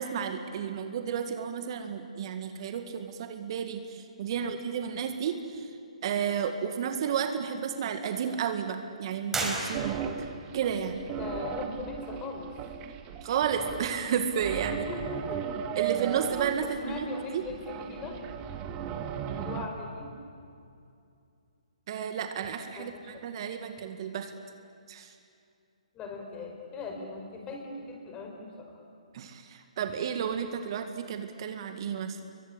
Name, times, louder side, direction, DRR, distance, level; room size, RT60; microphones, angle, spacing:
voice 1, 0.0-5.7 6.0-10.0 10.5-11.0 13.2-14.8 15.8-17.1 17.3-17.4 21.9-24.3 24.9-25.1 29.1-32.2, right 8 dB, 45° right, 7 dB, 2.0 m, -32 dB
sound 1, 9.3-10.3, right 2 dB, 10° right, 4.9 m, -33 dB
sound 2, 9.7-19.7, right 8 dB, 25° right, 1.7 m, -36 dB
voice 2, 11.1-12.5 14.7-15.6 16.6-18.2 19.4-20.1 22.8-23.1 25.9-28.8, left 3 dB, 20° left, 2 dB, 5.2 m, -39 dB
29.5 x 23.0 x 8.7 m, 2.5 s
figure-of-eight pair, 140°, 4 cm